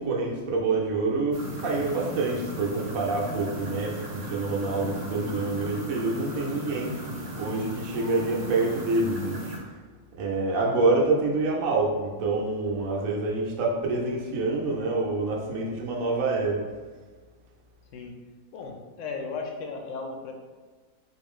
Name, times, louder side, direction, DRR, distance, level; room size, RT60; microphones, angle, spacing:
voice 1, 0.0-7.0 7.4-9.4 10.2-16.6, right 3 dB, 80° right, -2 dB, 1.1 m, -27 dB
sound 1, 1.3-9.6, right 1 dB, 55° right, 0.9 m, -36 dB
voice 2, 18.5-20.3, left 4 dB, 70° left, 2 dB, 0.9 m, -35 dB
3.8 x 2.5 x 3.6 m, 1.4 s
omnidirectional pair, 1.4 m